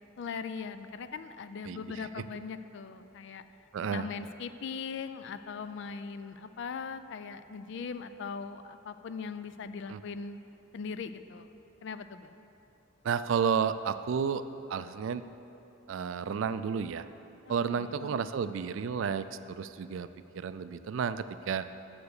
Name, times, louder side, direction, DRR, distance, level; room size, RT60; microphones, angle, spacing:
voice 1, 0.2-3.4 3.8-10.4 10.7-11.5 11.8-12.4 17.7-18.2, left 5 dB, 60° left, 11 dB, 0.3 m, -40 dB
voice 2, 3.7-4.1 9.9-10.0 13.0-14.4 14.7-15.2 15.9-17.1 17.5-20.1 20.3-21.7, right 6 dB, 65° right, 12 dB, 0.3 m, -31 dB
6.9 x 6.7 x 6.6 m, 2.9 s
head